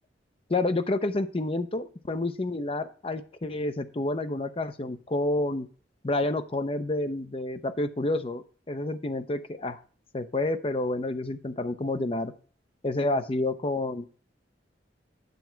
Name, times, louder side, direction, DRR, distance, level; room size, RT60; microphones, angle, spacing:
voice 1, 0.5-5.7 6.0-9.8 10.1-12.3 12.8-14.0, left 2 dB, 30° left, 10 dB, 0.7 m, -29 dB
9.4 x 7.1 x 4.5 m, 0.40 s
head